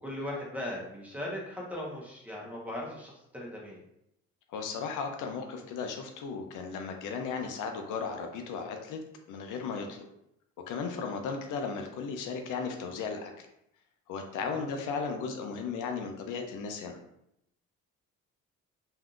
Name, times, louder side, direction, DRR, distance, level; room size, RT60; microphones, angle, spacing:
voice 1, 0.0-3.8 14.5-14.7, left 1 dB, 5° right, -3 dB, 1.0 m, -38 dB
voice 2, 4.5-9.0 9.3-10.0 10.7-13.5 14.1-17.0, left 5 dB, 85° left, 4 dB, 0.5 m, -35 dB
3.5 x 2.7 x 2.4 m, 0.78 s
cardioid pair, 90°, 30 cm